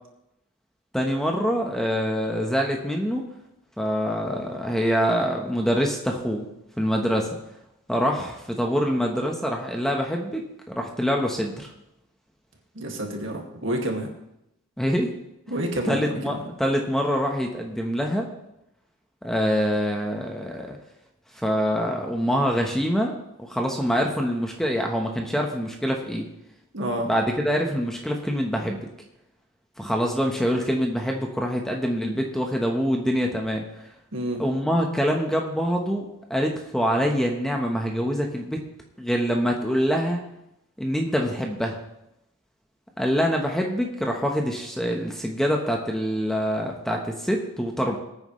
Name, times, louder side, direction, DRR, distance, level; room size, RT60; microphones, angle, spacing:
voice 1, 0.9-3.2 3.8-6.5 6.8-7.4 7.9-11.7 14.8-15.1 15.8-18.3 19.2-20.8 21.3-23.1 23.4-26.3 27.1-28.8 29.8-33.6 34.4-38.6 39.0-40.2 40.8-41.8 43.0-48.0, equal, ahead, 1 dB, 1.2 m, -25 dB
voice 2, 12.8-14.1 15.5-16.4 26.7-27.1 34.1-34.4, right 1 dB, 60° right, 1 dB, 2.3 m, -29 dB
21.5 x 9.3 x 3.3 m, 0.85 s
head